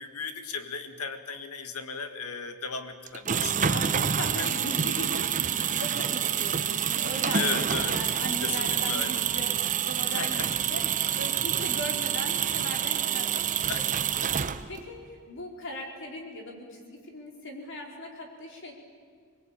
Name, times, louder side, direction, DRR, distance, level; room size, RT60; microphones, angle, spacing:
voice 1, 0.0-3.8 4.4-4.5 5.0-5.3 7.3-8.0 8.4-9.2 10.1-10.5 13.7-13.9, left 5 dB, 85° left, 7 dB, 1.7 m, -35 dB
sound 1, 3.1-14.9, right 8 dB, 35° right, 0.7 m, -27 dB
voice 2, 3.7-5.2 5.5-18.7, left 1 dB, 55° left, 1 dB, 4.4 m, -39 dB
23.5 x 21.5 x 8.9 m, 2.1 s
head